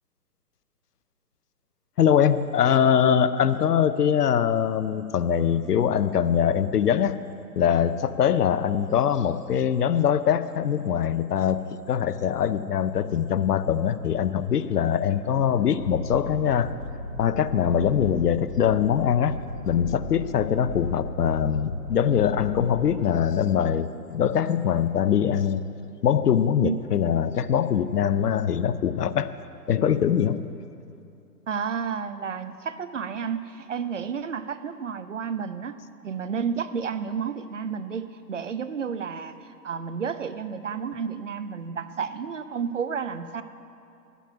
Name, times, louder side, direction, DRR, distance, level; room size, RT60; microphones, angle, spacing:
voice 1, 2.0-7.2 7.6-16.7 17.2-19.4 19.7-25.7 26.0-29.3 29.7-30.5, left 8 dB, 70° left, 13 dB, 0.7 m, -23 dB
sound 1, 15.8-22.9, left 1 dB, 5° right, 1.7 m, -36 dB
voice 2, 26.6-27.0 31.5-35.8 36.0-43.4, right 6 dB, 50° right, 12 dB, 0.6 m, -31 dB
11.0 x 8.3 x 9.3 m, 2.6 s
hypercardioid pair, 165°, 49 cm